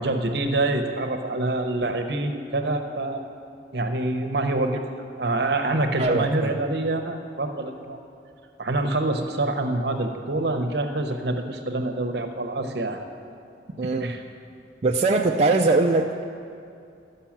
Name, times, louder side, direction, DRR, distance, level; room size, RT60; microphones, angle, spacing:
voice 1, 0.0-3.3 3.7-4.8 5.2-8.0 8.6-13.1 13.8-14.2, right 2 dB, 65° right, 6 dB, 0.8 m, -26 dB
voice 2, 6.0-6.5 13.8-14.2 14.8-16.2, right 3 dB, 35° right, 2 dB, 0.4 m, -21 dB
13.0 x 5.5 x 7.2 m, 2.5 s
head